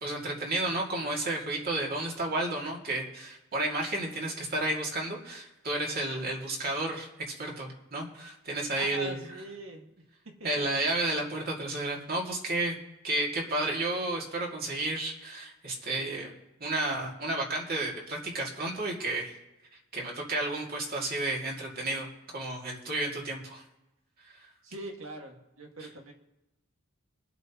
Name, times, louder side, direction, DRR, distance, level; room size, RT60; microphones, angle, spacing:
voice 1, 0.0-7.1 7.4-9.2 10.4-12.8 13.0-16.3 16.6-19.3 19.9-23.6 24.2-24.3, right 2 dB, 45° right, -1 dB, 2.3 m, -32 dB
voice 2, 8.8-9.9 10.4-10.9 24.6-26.1, right 1 dB, 70° right, 1 dB, 2.0 m, -42 dB
23.5 x 8.2 x 3.0 m, 0.98 s
head